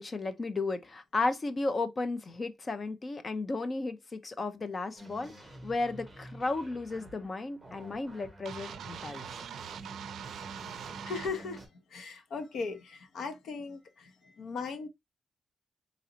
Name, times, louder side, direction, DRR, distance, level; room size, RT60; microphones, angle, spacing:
voice 1, 0.0-5.3 5.6-9.2, left 3 dB, 25° left, 0.5 m, -34 dB
sound 1, 5.0-11.7, right 1 dB, 5° right, 1.4 m, -49 dB
sound 2, 8.5-11.3, right 8 dB, 85° right, 0.4 m, -43 dB
voice 2, 11.0-11.6 11.9-14.9, left 4 dB, 65° left, 0.8 m, -38 dB
4.1 x 3.9 x 2.7 m
wide cardioid pair, 180°, 0 cm